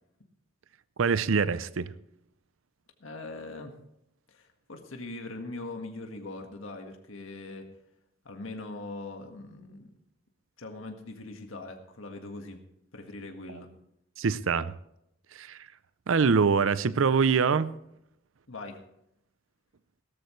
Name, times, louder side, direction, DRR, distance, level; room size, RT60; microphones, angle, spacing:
voice 1, 1.0-1.9 14.2-14.7 15.3-15.6 16.1-17.7, right 5 dB, 85° right, 0.5 m, -24 dB
voice 2, 3.0-3.7 4.3-7.7 8.2-9.9 10.6-12.6 12.9-13.7 18.5-18.8, left 2 dB, 85° left, 1.7 m, -41 dB
17.5 x 13.5 x 3.2 m
head